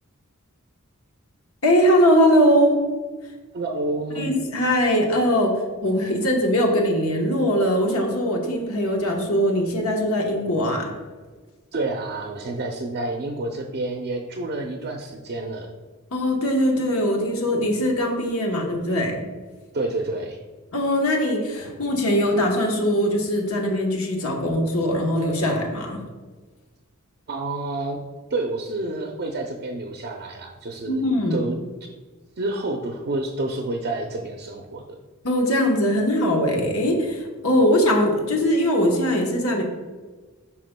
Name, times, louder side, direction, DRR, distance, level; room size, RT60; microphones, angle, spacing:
voice 1, 1.6-2.8 4.2-10.9 16.1-19.2 20.7-26.0 30.9-31.4 35.2-39.6, equal, 75° left, 1 dB, 1.0 m, -21 dB
voice 2, 3.5-4.3 11.7-15.7 19.7-20.4 27.3-28.0 28.3-31.6 32.4-35.0, right 2 dB, 45° right, 2 dB, 0.5 m, -29 dB
9.1 x 5.7 x 2.2 m, 1.4 s
head